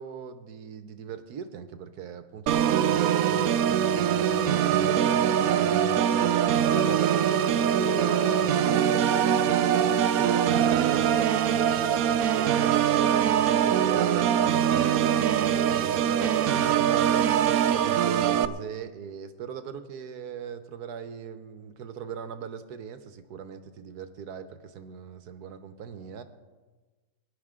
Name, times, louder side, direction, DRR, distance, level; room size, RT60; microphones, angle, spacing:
voice 1, 0.0-6.4 10.1-17.3 17.7-26.2, right 7 dB, 60° right, 10 dB, 1.2 m, -40 dB
Organ, 2.5-18.5, right 9 dB, 90° right, 0.7 m, -23 dB
voice 2, 6.7-9.8 16.0-16.7, left 3 dB, 55° left, 6 dB, 0.7 m, -40 dB
22.5 x 11.5 x 3.7 m, 1.3 s
omnidirectional pair, 2.1 m